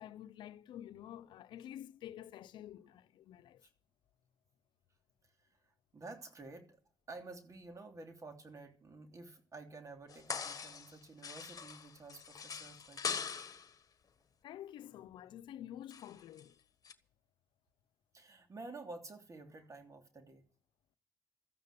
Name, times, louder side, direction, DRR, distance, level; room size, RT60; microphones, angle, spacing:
voice 1, 0.0-3.6 14.4-16.6, left 11 dB, 85° left, 0.7 m, -49 dB
voice 2, 5.9-6.8 7.1-13.3 18.1-20.4, right 3 dB, 45° right, 3.2 m, -51 dB
sound 1, 10.1-11.0 11.2-13.7 15.9-16.4 16.8-16.9, left 6 dB, 50° left, 1.4 m, -42 dB
14.0 x 9.5 x 8.3 m
supercardioid pair, 60°, 8 cm